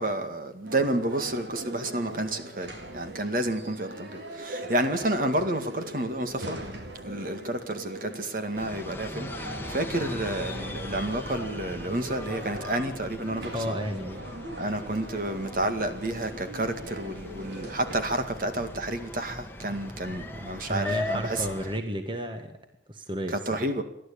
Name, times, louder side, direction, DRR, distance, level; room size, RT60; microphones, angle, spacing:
voice 1, 0.0-6.6 7.1-13.8 14.6-21.5 23.3-23.8, right 1 dB, 50° right, 2.1 m, -30 dB
sound 1, 0.6-18.0, right 1 dB, 80° right, 4.2 m, -41 dB
sound 2, 8.6-21.8, left 2 dB, 10° left, 1.4 m, -39 dB
voice 2, 13.5-14.2 20.7-22.6 22.9-23.4, equal, 25° right, 1.6 m, -32 dB
29.0 x 12.0 x 8.7 m
head